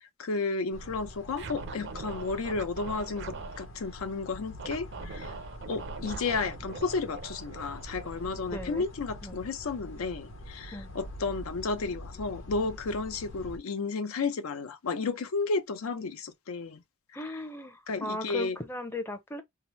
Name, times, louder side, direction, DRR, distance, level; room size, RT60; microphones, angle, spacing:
voice 1, 0.2-5.3 5.7-16.8 17.3-17.4 17.9-18.6, left 4 dB, 90° left, 0.5 m, -32 dB
sound 1, 0.7-13.6, equal, 65° left, 0.9 m, -45 dB
Scratching (performance technique), 1.3-3.7 4.6-8.9, right 4 dB, 55° right, 0.5 m, -42 dB
voice 2, 8.5-8.9 9.2-9.4 10.7-10.9 17.1-19.4, left 2 dB, 10° left, 0.4 m, -37 dB
2.8 x 2.0 x 2.9 m
head